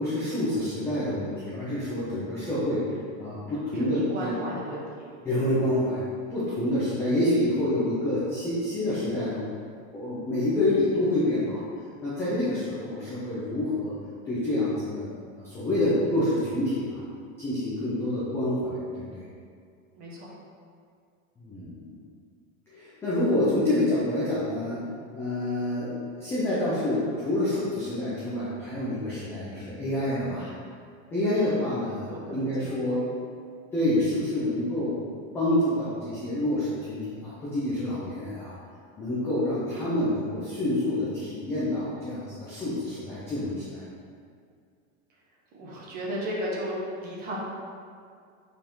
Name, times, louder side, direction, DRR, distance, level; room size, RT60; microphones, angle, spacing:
voice 1, 0.0-2.8 3.2-4.4 5.2-6.0 6.3-9.5 9.9-11.6 12.0-13.9 14.3-17.0 17.4-19.2 21.4-22.0 22.7-24.8 25.1-30.5 31.1-33.1 33.7-34.9 35.3-38.5 39.0-43.8, left 1 dB, 5° left, -10 dB, 0.5 m, -27 dB
voice 2, 3.7-5.5 20.0-20.3 31.3-31.6 32.1-33.0 45.5-47.4, equal, 25° right, -4 dB, 1.1 m, -35 dB
8.0 x 4.5 x 3.7 m, 2.3 s
supercardioid pair, 180°, 38 cm